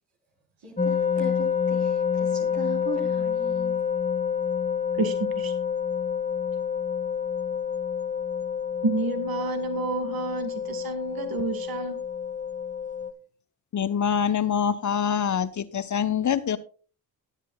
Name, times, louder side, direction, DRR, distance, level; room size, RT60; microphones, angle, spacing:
voice 1, 0.6-3.8, right 3 dB, 85° right, -1 dB, 4.3 m, -39 dB
sound 1, 0.8-13.1, left 7 dB, 20° left, 1.0 m, -28 dB
voice 2, 5.0-5.5 8.8-12.0, right 3 dB, 60° right, 8 dB, 1.8 m, -29 dB
voice 3, 13.7-16.6, left 8 dB, 45° left, 13 dB, 0.9 m, -25 dB
20.0 x 8.3 x 2.3 m, 0.38 s
supercardioid pair, 50°, 40 cm